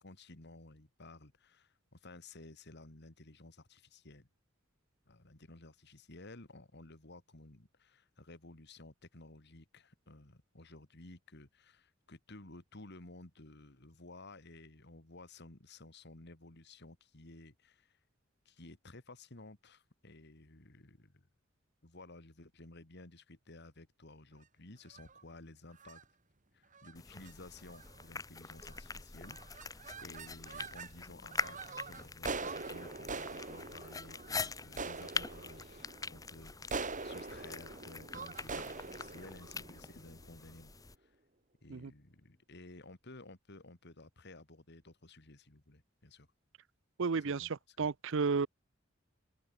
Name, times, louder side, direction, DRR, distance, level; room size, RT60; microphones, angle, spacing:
voice 1, 0.0-4.3 5.1-18.0 18.5-21.3 21.8-26.0 26.5-40.7 41.0-41.2 41.6-46.3 47.1-47.9, left 2 dB, 55° left, 2.5 m, -54 dB
sound 1, 24.9-25.2 25.8-26.0 26.7-26.9 27.2-27.3 27.7-28.1 28.6-29.0 29.2-30.9 31.3-40.5, right 4 dB, 40° right, 3.6 m, -44 dB
sound 2, 26.9-40.9, left 4 dB, 20° left, 1.1 m, -44 dB
voice 2, 47.0-47.5 47.8-48.5, right 4 dB, 65° right, 0.6 m, -32 dB
open air
head